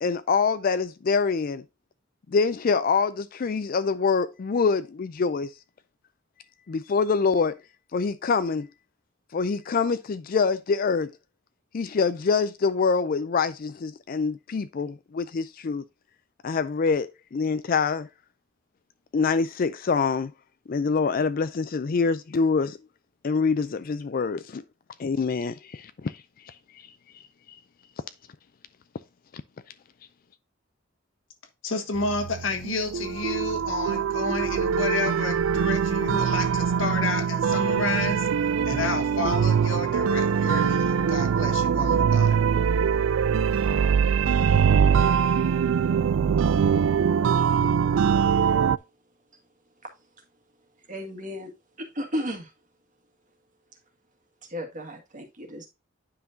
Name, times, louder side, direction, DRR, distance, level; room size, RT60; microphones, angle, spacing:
voice 1, 0.0-1.6 2.3-5.5 6.7-7.6 7.9-8.7 9.3-11.1 11.7-15.8 16.4-18.1 19.1-20.3 20.7-22.8 23.2-24.6 25.0-26.9, left 5 dB, 45° left, 0.4 m, -25 dB
voice 2, 31.6-38.3 38.6-42.4, left 3 dB, 85° left, 1.6 m, -31 dB
sound 1, 31.9-48.8, right 7 dB, 85° right, 0.4 m, -23 dB
voice 3, 50.9-51.5 51.8-52.5 54.5-55.7, equal, 40° right, 1.8 m, -34 dB
9.6 x 5.7 x 2.7 m
head